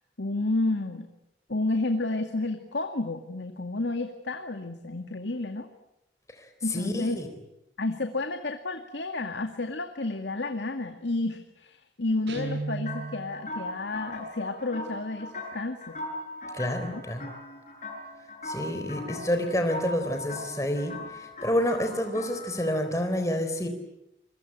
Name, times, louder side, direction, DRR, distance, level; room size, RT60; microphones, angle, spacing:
voice 1, 0.2-1.1 1.5-5.7 6.6-7.2 7.8-16.0 16.8-17.0, left 2 dB, 80° left, 6 dB, 2.1 m, -31 dB
voice 2, 6.4-7.3 16.5-17.3 18.4-23.7, left 1 dB, 15° left, 6 dB, 3.8 m, -29 dB
Guitar, 12.3-13.4, right 2 dB, 75° right, 7.9 m, -34 dB
sound 1, 12.8-22.8, left 1 dB, 40° left, 7.7 m, -40 dB
28.0 x 23.0 x 9.0 m, 0.86 s
head